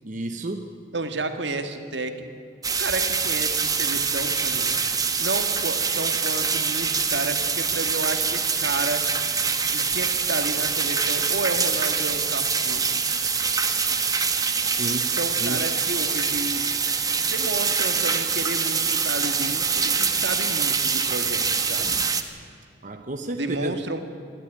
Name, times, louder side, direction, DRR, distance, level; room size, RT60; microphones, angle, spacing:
voice 1, 0.0-0.7 14.7-15.1 15.4-15.6 22.8-23.7, right 2 dB, 45° right, 5 dB, 0.9 m, -31 dB
voice 2, 0.9-2.3 2.8-4.8 5.2-9.1 9.7-12.9 15.1-16.7 17.1-22.0 23.3-24.0, right 2 dB, 75° right, 7 dB, 1.8 m, -31 dB
sound 1, 2.6-22.2, right 5 dB, 20° right, 1.3 m, -24 dB
27.5 x 12.0 x 9.8 m, 2.4 s
head